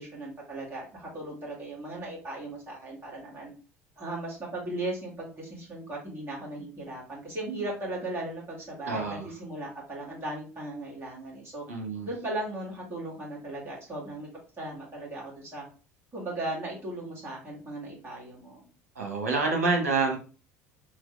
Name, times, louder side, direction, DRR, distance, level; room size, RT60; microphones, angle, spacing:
voice 1, 0.0-3.5 4.0-11.6 12.0-14.3 14.6-15.6 16.1-18.7, right 2 dB, 30° right, -4 dB, 2.1 m, -37 dB
voice 2, 8.9-9.3 11.7-12.1 18.9-20.2, right 3 dB, 75° right, 0 dB, 1.1 m, -27 dB
4.1 x 2.5 x 3.2 m, 0.36 s
figure-of-eight pair, 65°, 8 cm